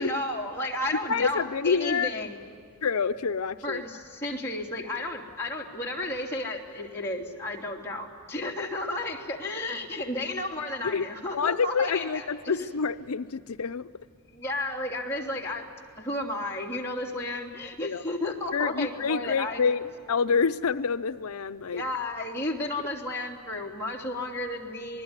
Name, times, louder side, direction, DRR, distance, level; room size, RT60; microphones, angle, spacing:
voice 1, 0.0-2.4 3.6-12.7 14.3-15.7 16.0-19.8 21.7-25.0, left 1 dB, 10° left, -3 dB, 3.1 m, -33 dB
voice 2, 1.1-2.1 2.8-3.8 10.8-11.0 11.3-13.9 17.8-18.0 18.5-19.8 20.1-21.8, left 5 dB, 80° left, 10 dB, 0.6 m, -27 dB
27.0 x 20.5 x 9.7 m, 2.3 s
head